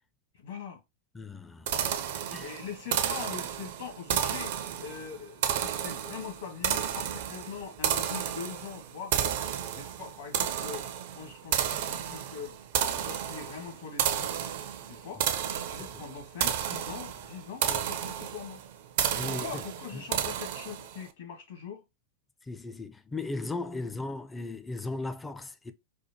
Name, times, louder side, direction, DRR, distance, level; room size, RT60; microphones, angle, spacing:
voice 1, 0.4-0.8 1.7-2.0 2.4-9.1 9.7-12.6 12.9-18.6 19.2-21.8, left 7 dB, 60° left, 1.3 m, -42 dB
voice 2, 1.1-1.7 2.3-2.5 15.8-16.0 19.2-19.6 19.9-20.0 22.4-25.7, left 3 dB, 10° left, 0.4 m, -37 dB
sound 1, 1.7-21.0, right 9 dB, 55° right, 0.5 m, -32 dB
4.3 x 2.2 x 2.8 m
figure-of-eight pair, 90°, 0 cm